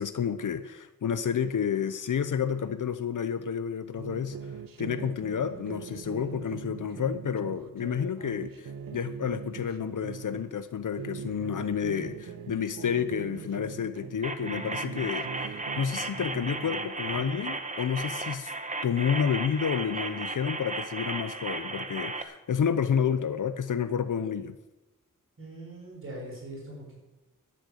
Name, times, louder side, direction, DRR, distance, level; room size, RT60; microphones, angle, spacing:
voice 1, 0.0-4.4 4.8-18.5 18.8-24.6, left 7 dB, 65° left, 11 dB, 0.7 m, -30 dB
sound 1, 4.0-10.4 10.9-14.2 14.4-17.6, right 7 dB, 80° right, 0.9 m, -42 dB
sound 2, 14.2-22.2, right 3 dB, 20° right, 1.0 m, -35 dB
voice 2, 25.4-27.0, right 1 dB, 40° right, -3 dB, 5.9 m, -41 dB
11.5 x 10.0 x 8.3 m, 1.0 s
wide cardioid pair, 135°, 33 cm